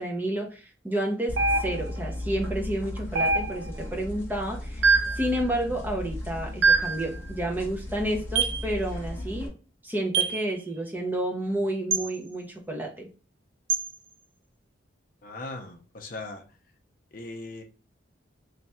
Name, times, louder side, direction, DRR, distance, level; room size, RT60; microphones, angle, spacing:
voice 1, 0.0-9.5 9.8-13.1, right 1 dB, 10° right, 1 dB, 0.6 m, -30 dB
sound 1, 1.3-9.5, left 1 dB, 10° left, 0.9 m, -36 dB
sound 2, 1.4-2.0 3.2-3.8 4.8-5.3 6.6-7.0 8.4-8.6 10.1-10.4 11.9-12.1 13.7-13.9, right 4 dB, 75° right, 0.4 m, -23 dB
voice 2, 15.2-16.6 17.1-17.6, left 2 dB, 45° left, 3 dB, 0.6 m, -39 dB
3.2 x 2.3 x 4.1 m, 0.36 s
head